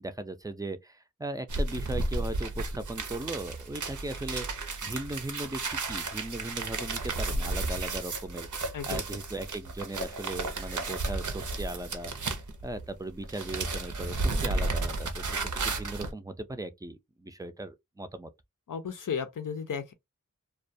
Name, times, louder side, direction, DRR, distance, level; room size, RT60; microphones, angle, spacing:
voice 1, 0.0-18.3, right 2 dB, 10° right, 0.4 m, -38 dB
sound 1, 1.5-12.9 13.2-16.1, right 2 dB, 70° right, 0.5 m, -33 dB
voice 2, 18.7-19.9, left 6 dB, 80° left, 0.5 m, -34 dB
2.3 x 2.1 x 2.6 m
wide cardioid pair, 55°, 32 cm